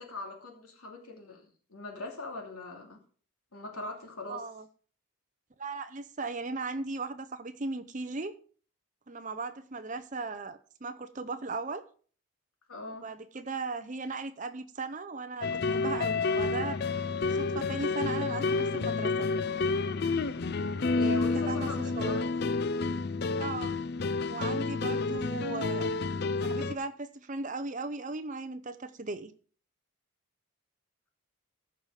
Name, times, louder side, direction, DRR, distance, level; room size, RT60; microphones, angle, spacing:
voice 1, 0.0-3.0 3.5-4.4 12.7-13.1 20.9-22.5 24.7-25.1, left 2 dB, 85° left, 2.8 m, -41 dB
voice 2, 4.3-4.7 5.6-8.3 9.1-11.8 12.9-16.8 17.3-19.3 20.9-21.7 22.0-22.2 23.4-23.7 24.3-25.9 26.4-29.3, right 3 dB, 35° right, 0.7 m, -37 dB
sound 1, 15.4-26.7, left 3 dB, 45° left, 0.4 m, -30 dB
14.0 x 5.7 x 5.0 m
head